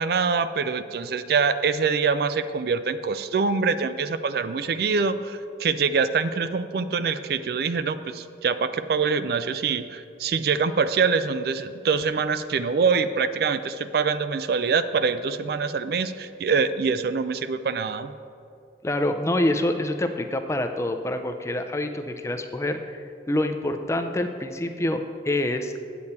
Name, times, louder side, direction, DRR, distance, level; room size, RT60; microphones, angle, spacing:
voice 1, 0.0-18.1, right 5 dB, 55° right, 12 dB, 0.3 m, -24 dB
voice 2, 18.8-25.0 25.2-25.7, left 1 dB, 15° left, 7 dB, 0.4 m, -26 dB
8.6 x 8.1 x 4.2 m, 2.5 s
head